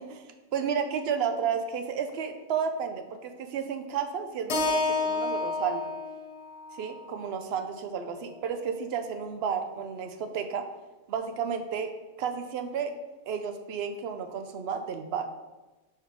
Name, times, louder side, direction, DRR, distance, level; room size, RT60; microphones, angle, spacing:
voice 1, 0.1-5.8 6.8-10.6 11.1-11.9 12.2-12.9 13.3-15.3, right 7 dB, 65° right, 7 dB, 0.6 m, -32 dB
Keyboard (musical), 4.5-8.7, left 3 dB, 55° left, 0.9 m, -32 dB
4.8 x 4.5 x 4.9 m, 1.1 s
omnidirectional pair, 1.6 m